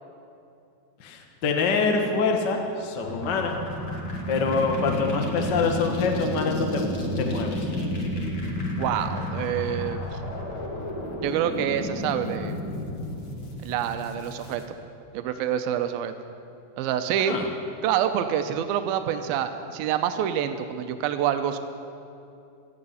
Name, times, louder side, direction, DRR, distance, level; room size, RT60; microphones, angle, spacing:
voice 1, 1.0-3.6 4.3-7.6 17.3-17.4, left 4 dB, 75° left, 2 dB, 1.0 m, -25 dB
sound 1, 3.0-14.6, left 1 dB, 55° left, 1.2 m, -31 dB
voice 2, 8.8-10.2 11.2-12.6 13.6-14.6 15.1-16.1 16.8-17.4 17.8-21.6, right 9 dB, 85° right, 8 dB, 2.6 m, -27 dB
18.5 x 13.0 x 5.6 m, 2.6 s
omnidirectional pair, 4.2 m